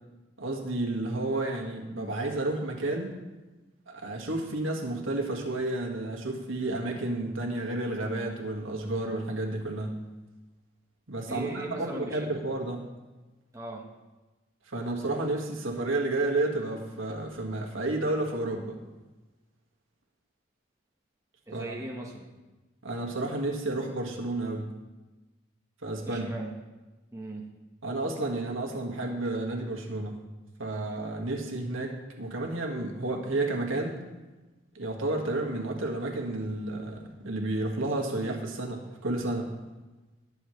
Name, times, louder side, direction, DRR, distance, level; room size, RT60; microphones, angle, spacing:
voice 1, 0.4-3.1 3.9-10.0 11.1-12.8 14.7-18.8 21.5-21.7 22.8-24.7 25.8-26.3 27.8-30.2 30.6-34.0 34.8-39.5, right 2 dB, 75° right, 1 dB, 1.8 m, -31 dB
voice 2, 11.3-12.4 13.5-13.9 21.5-22.3 26.0-26.5 27.1-27.5, right 2 dB, 15° right, -2 dB, 1.2 m, -38 dB
20.5 x 7.3 x 3.2 m, 1.2 s
head